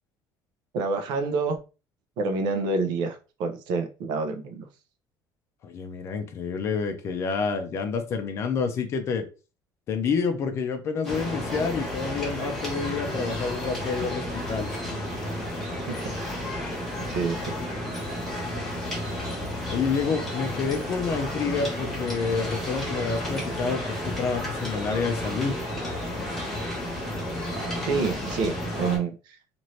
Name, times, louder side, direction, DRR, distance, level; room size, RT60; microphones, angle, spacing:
voice 1, 0.7-1.6 2.2-4.7 15.9-16.0 17.1-17.5 27.8-29.4, right 4 dB, 60° right, 6 dB, 0.6 m, -27 dB
voice 2, 5.6-9.3 9.9-14.7 19.7-25.5, left 5 dB, 35° left, 6 dB, 0.5 m, -28 dB
sound 1, 11.0-29.0, left 1 dB, 5° left, 1.0 m, -32 dB
2.8 x 2.5 x 3.1 m, 0.32 s
cardioid pair, 180°, 8 cm